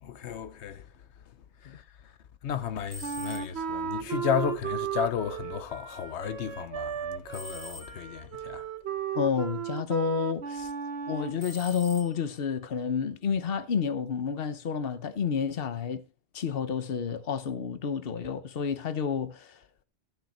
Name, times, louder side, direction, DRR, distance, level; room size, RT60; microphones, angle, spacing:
voice 1, 0.0-0.9 1.6-2.1 2.4-8.7, left 8 dB, 90° left, 1.0 m, -33 dB
sound 1, 2.9-3.8 7.3-8.3 11.4-12.5, equal, 10° left, 1.6 m, -45 dB
Wind instrument woodwind instrument, 3.0-11.4, right 7 dB, 70° right, 1.2 m, -35 dB
voice 2, 9.1-10.7 11.1-16.0 16.3-19.5, left 7 dB, 60° left, 1.1 m, -30 dB
14.5 x 6.8 x 4.2 m
omnidirectional pair, 1.1 m